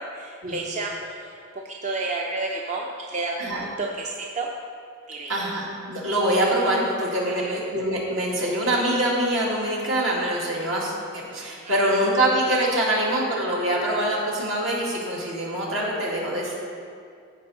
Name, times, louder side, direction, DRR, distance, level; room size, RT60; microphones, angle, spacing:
voice 1, 0.0-1.4 1.6-4.5 5.1-5.3 7.3-7.5 11.6-12.0, right 3 dB, 35° right, 0 dB, 0.6 m, -31 dB
voice 2, 5.3-16.6, right 1 dB, 70° right, -4 dB, 2.0 m, -24 dB
14.0 x 5.3 x 3.9 m, 2.3 s
head